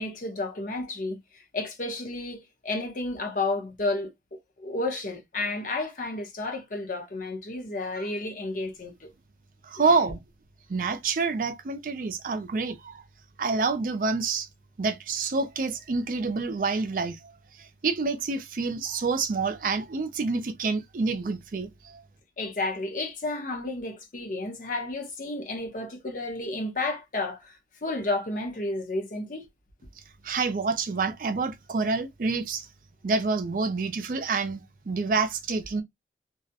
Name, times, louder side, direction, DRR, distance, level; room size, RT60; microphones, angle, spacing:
voice 1, 0.0-9.1 9.8-9.9 22.4-29.5, left 2 dB, 50° left, 0.6 m, -32 dB
voice 2, 9.6-10.2 10.7-13.0 13.4-14.5 14.8-17.3 17.6-22.0 30.2-32.7 33.0-35.8, right 4 dB, 50° right, 0.4 m, -27 dB
2.3 x 2.0 x 2.7 m
head